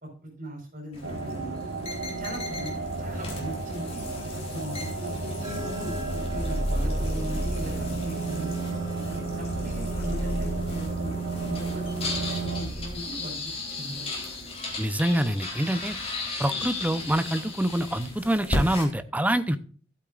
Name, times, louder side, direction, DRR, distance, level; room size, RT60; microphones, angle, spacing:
voice 1, 0.0-1.5 2.2-4.1 4.5-8.6 9.1-12.1 12.4-14.1, right 1 dB, 45° right, 1 dB, 4.8 m, -39 dB
sound 1, 0.9-18.9, left 2 dB, 30° left, 3.7 m, -36 dB
sound 2, 1.0-12.6, right 3 dB, 75° right, 1.6 m, -33 dB
sound 3, 5.4-12.9, equal, 25° right, 2.1 m, -33 dB
voice 2, 14.8-16.0 16.4-19.6, right 1 dB, 10° right, 11 dB, 0.7 m, -26 dB
14.5 x 8.6 x 2.5 m, 0.43 s
head